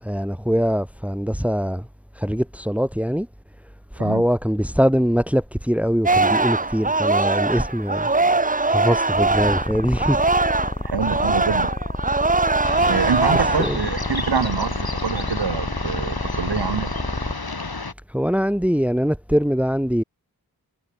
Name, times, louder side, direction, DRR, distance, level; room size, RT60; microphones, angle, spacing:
voice 1, 0.0-1.9 2.1-3.3 3.9-10.2 13.3-13.8 18.1-20.0, equal, 5° right, 3.0 m, -22 dB
Singing, 6.1-10.7 11.0-13.8 14.2-14.6, right 3 dB, 20° right, 0.8 m, -21 dB
sound 1, 9.1-17.3, left 1 dB, 15° left, 4.4 m, -28 dB
voice 2, 10.8-11.7 12.9-16.9, right 6 dB, 85° right, 1.2 m, -25 dB
sound 2, 12.6-17.9, left 3 dB, 65° left, 4.7 m, -31 dB
wide cardioid pair, 45°, 39 cm